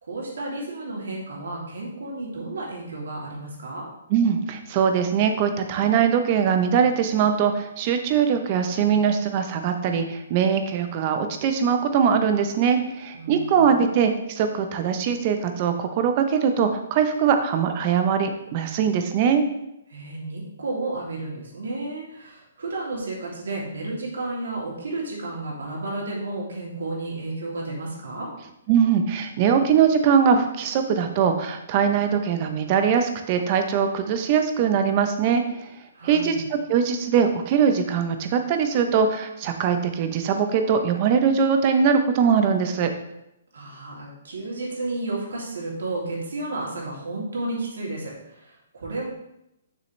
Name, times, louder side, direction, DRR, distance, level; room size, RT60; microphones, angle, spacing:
voice 1, 0.0-3.8 13.1-13.9 19.9-28.3 35.9-36.4 43.5-49.1, right 2 dB, 85° right, -3 dB, 2.8 m, -32 dB
voice 2, 4.1-19.4 28.7-35.4 36.0-42.9, right 7 dB, 30° right, 7 dB, 0.7 m, -21 dB
6.8 x 6.3 x 3.2 m, 0.84 s
hypercardioid pair, 165°, 0 cm